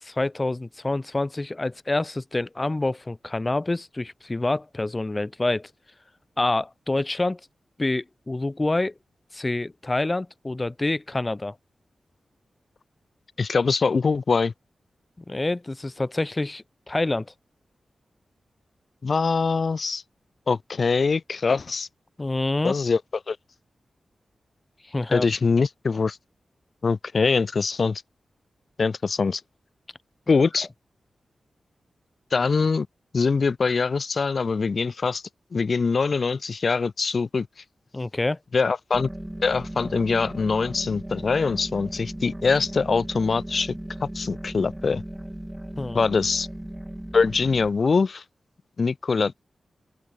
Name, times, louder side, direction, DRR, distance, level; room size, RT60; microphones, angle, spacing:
voice 1, 0.0-5.7 6.4-7.4 7.8-8.9 9.3-11.5 15.3-17.3 22.2-22.7 24.9-25.3 37.9-38.4 45.8-46.0, left 2 dB, 20° left, 3.4 m, -27 dB
voice 2, 13.4-14.5 19.0-20.0 20.5-21.9 22.6-23.0 23.3-23.4 25.1-26.2 26.8-28.0 28.8-29.4 30.3-30.7 32.3-32.9 33.1-35.2 35.5-37.5 38.5-39.1 39.4-43.8 44.0-45.0 45.9-46.5 47.1-48.2 48.8-49.4, left 4 dB, 50° left, 0.7 m, -23 dB
sound 1, 38.9-47.7, right 1 dB, 10° right, 1.9 m, -37 dB
open air
wide cardioid pair, 125°, 0 cm